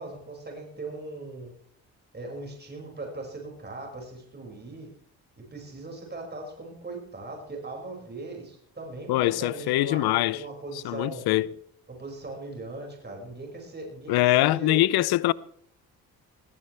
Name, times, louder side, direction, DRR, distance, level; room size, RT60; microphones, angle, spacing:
voice 1, 0.0-1.5 2.1-4.9 5.5-11.2 11.9-14.9, right 2 dB, 25° right, 5.8 m, -39 dB
voice 2, 9.1-10.4 10.8-11.5 14.1-15.3, left 16 dB, 90° left, 0.6 m, -23 dB
20.0 x 16.5 x 3.3 m
cardioid pair, 85°, 37 cm